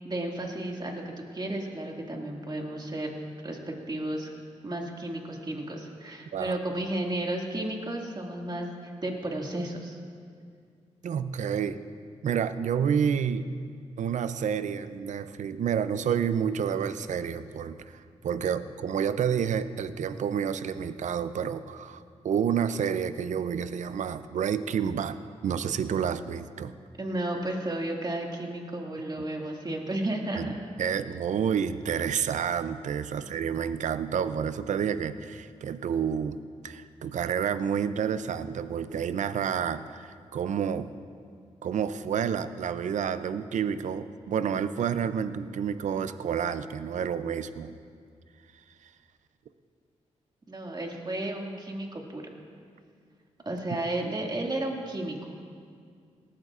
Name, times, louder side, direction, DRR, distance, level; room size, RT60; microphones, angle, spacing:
voice 1, 0.0-1.0 1.3-3.1 3.4-4.3 4.6-10.0 27.0-30.6 33.2-33.3 50.5-52.2 53.5-55.2, right 1 dB, 35° right, 0 dB, 2.1 m, -33 dB
voice 2, 11.0-11.8 12.2-13.5 14.0-25.2 25.4-26.7 30.4-30.5 30.8-36.4 36.6-40.9 41.6-47.7, right 7 dB, 75° right, 12 dB, 0.5 m, -29 dB
18.5 x 13.0 x 2.5 m, 2.2 s
cardioid pair, 55°, 13 cm